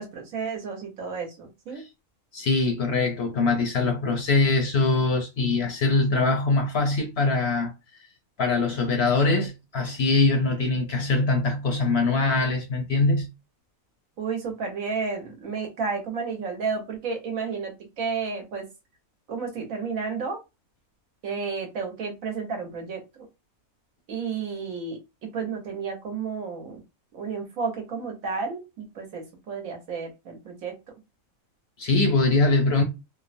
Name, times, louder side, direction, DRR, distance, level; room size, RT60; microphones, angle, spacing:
voice 1, 0.0-1.8 14.2-18.7 19.3-20.4 21.2-23.3 24.1-26.8 27.1-30.7, right 5 dB, 75° right, 1.3 m, -32 dB
voice 2, 2.3-7.7 8.4-13.3 31.8-32.8, left 3 dB, 60° left, 0.7 m, -23 dB
3.0 x 2.0 x 2.5 m
omnidirectional pair, 1.5 m